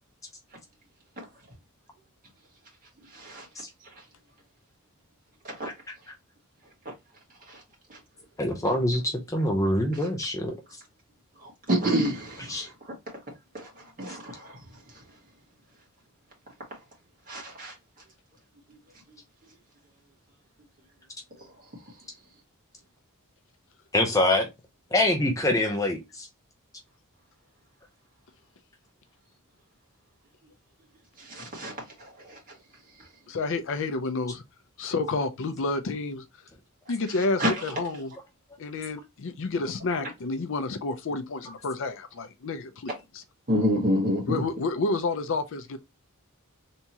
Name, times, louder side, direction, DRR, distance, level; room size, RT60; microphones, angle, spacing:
voice 1, 3.1-3.4 5.4-5.7 7.5-7.6 7.9-8.0 11.4-12.7 13.5-14.6 17.3-17.7 31.2-32.4 37.4-37.6 43.5-44.4, equal, 40° right, 1.7 m, -28 dB
voice 2, 8.4-10.5 12.5-12.7 23.9-24.5 24.9-26.3, left 1 dB, 15° left, 0.6 m, -25 dB
voice 3, 33.3-34.4 34.8-36.2 36.9-38.1 38.6-43.2 44.3-45.8, left 3 dB, 60° left, 0.5 m, -30 dB
3.5 x 2.9 x 2.7 m
head